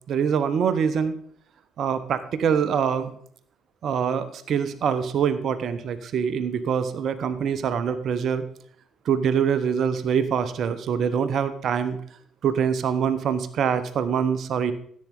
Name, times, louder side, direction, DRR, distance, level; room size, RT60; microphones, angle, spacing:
voice 1, 0.1-1.2 1.8-3.2 3.8-8.4 9.1-12.0 12.4-14.7, right 7 dB, 55° right, 12 dB, 0.8 m, -24 dB
14.5 x 8.5 x 3.7 m, 0.63 s
figure-of-eight pair, 50°, 0 cm